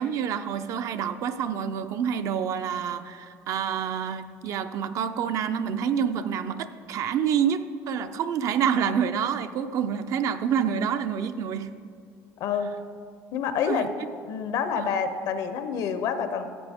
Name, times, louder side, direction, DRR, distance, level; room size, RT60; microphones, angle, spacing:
voice 1, 0.0-11.8 13.7-13.9 14.7-14.9, right 8 dB, 55° right, 9 dB, 0.5 m, -27 dB
voice 2, 13.3-13.9 14.3-16.5, left 7 dB, 65° left, 9 dB, 0.8 m, -27 dB
13.5 x 8.4 x 3.6 m, 2.3 s
cardioid pair, 125°, 7 cm